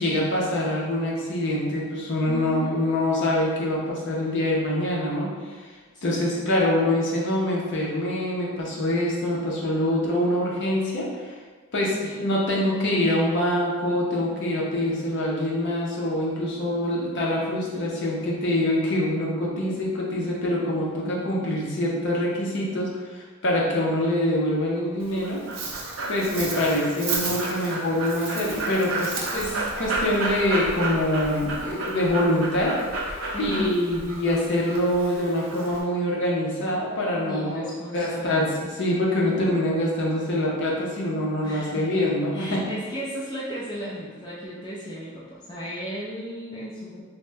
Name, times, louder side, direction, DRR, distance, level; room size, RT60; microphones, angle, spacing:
voice 1, 0.0-11.4 11.7-25.4 25.7-25.8 26.1-32.8 33.1-42.6, left 1 dB, 55° left, -4 dB, 0.6 m, -25 dB
voice 2, 2.3-2.8 5.9-6.5 11.9-12.2 20.8-21.2 33.3-33.7 37.3-38.3 41.4-42.0 42.3-47.0, equal, 20° left, -7 dB, 0.4 m, -36 dB
Dog, 25.0-35.8, right 2 dB, 60° right, 0.5 m, -31 dB
2.9 x 2.1 x 3.3 m, 1.4 s
head